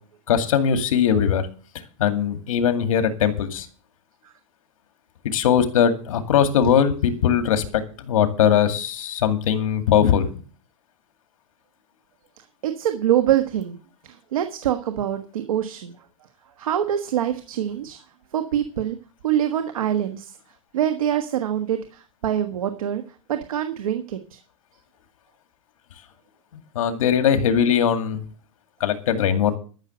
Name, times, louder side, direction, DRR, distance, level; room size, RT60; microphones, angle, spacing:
voice 1, 0.3-1.4 2.0-3.7 5.2-10.3 26.8-28.2 28.8-29.6, left 8 dB, 75° left, 9 dB, 2.2 m, -20 dB
voice 2, 12.6-13.8 14.0-15.9 16.6-18.0 18.3-19.0 19.2-20.4 20.7-23.0 23.3-24.4, right 10 dB, 85° right, 8 dB, 1.4 m, -24 dB
13.0 x 6.6 x 7.9 m, 0.39 s
supercardioid pair, 165°, 17 cm